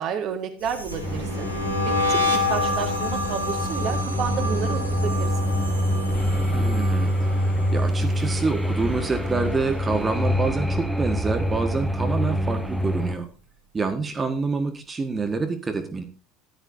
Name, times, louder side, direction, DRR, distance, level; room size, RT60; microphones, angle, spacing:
voice 1, 0.0-1.5 1.9-5.3, right 7 dB, 50° right, 6 dB, 1.9 m, -31 dB
sound 1, 0.6-9.8 10.1-10.5 10.8-12.4, left 2 dB, 90° left, 1.3 m, -29 dB
sound 2, 1.0-13.2, equal, ahead, 1.1 m, -26 dB
voice 2, 6.5-13.3 13.7-16.0, right 4 dB, 20° right, 5 dB, 1.7 m, -27 dB
14.5 x 11.0 x 2.7 m, 0.33 s
figure-of-eight pair, 65°, 0 cm